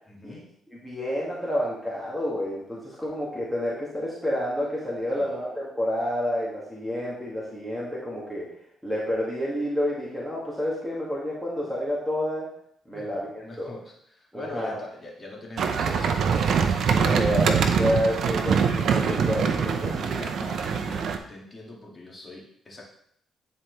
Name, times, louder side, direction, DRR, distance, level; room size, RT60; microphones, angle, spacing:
voice 1, 0.1-0.4 5.1-5.4 12.9-16.5 17.1-17.5 19.4-22.8, left 2 dB, 30° left, -2 dB, 1.9 m, -42 dB
voice 2, 0.7-8.5 8.8-12.5 12.9-13.7 14.3-14.8 17.0-19.5 19.8-19.9, equal, ahead, -6 dB, 1.9 m, -29 dB
sound 1, 15.6-21.2, right 6 dB, 65° right, 0.7 m, -24 dB
9.4 x 4.4 x 3.2 m, 0.69 s
cardioid pair, 90°, 0 cm